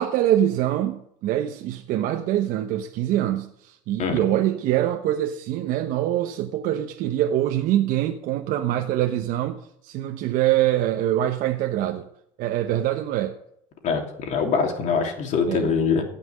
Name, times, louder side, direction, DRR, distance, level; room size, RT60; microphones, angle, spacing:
voice 1, 0.0-9.6 9.8-12.0 12.4-13.4 15.5-15.7, right 12 dB, 60° right, 1.0 m, -24 dB
voice 2, 13.8-16.0, left 5 dB, 50° left, 3.1 m, -23 dB
16.5 x 5.9 x 7.5 m
supercardioid pair, 100°, 16 cm